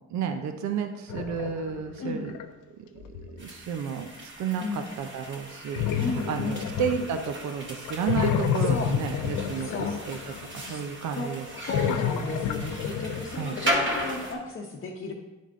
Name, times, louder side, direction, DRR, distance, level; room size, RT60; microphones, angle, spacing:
voice 1, 0.1-2.4 3.0-9.7 10.1-10.2 10.5-11.5 11.8-12.0 13.4-13.5, right 7 dB, 70° right, 6 dB, 0.7 m, -32 dB
sound 1, 1.1-2.5 3.0-3.4 5.7-7.5 7.9-10.7 11.5-14.0, left 8 dB, 90° left, 0.5 m, -30 dB
sound 2, 3.4-14.3, equal, 40° right, 1.6 m, -36 dB
voice 2, 6.0-6.7 8.6-8.9 9.6-9.9 10.7-10.8 11.2-11.3 11.6-15.1, left 3 dB, 40° left, -1 dB, 0.8 m, -34 dB
10.5 x 3.6 x 3.7 m, 1.1 s
cardioid pair, 90°, 30 cm